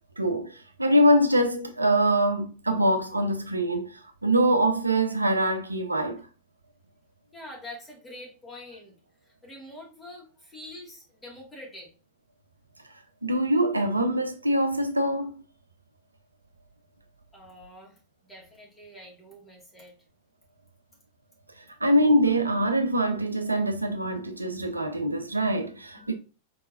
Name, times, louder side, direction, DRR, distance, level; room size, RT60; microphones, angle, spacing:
voice 1, 0.2-6.2 13.2-15.3 21.8-26.1, right 1 dB, 85° right, 0.5 m, -24 dB
voice 2, 7.3-8.9 9.2-11.9 17.3-19.9 26.0-26.1, left 1 dB, 10° left, 2.0 m, -45 dB
4.7 x 3.7 x 2.6 m
figure-of-eight pair, 90°, 0 cm